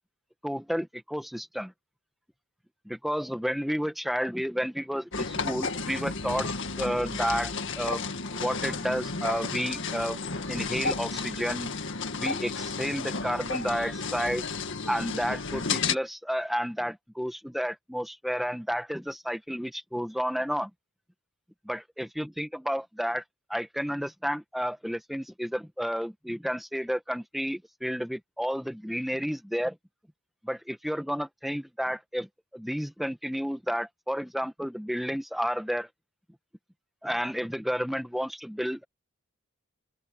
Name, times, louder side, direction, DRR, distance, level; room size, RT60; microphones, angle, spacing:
voice 1, 0.4-1.7 2.9-6.5 6.8-8.0 8.3-10.2 10.5-11.7 12.1-14.5 14.9-20.7 21.6-23.2 23.5-29.7 30.4-32.3 32.5-35.9 37.0-38.8, equal, ahead, 1.5 m, -31 dB
sound 1, 5.1-16.0, left 4 dB, 60° left, 2.0 m, -32 dB
open air
head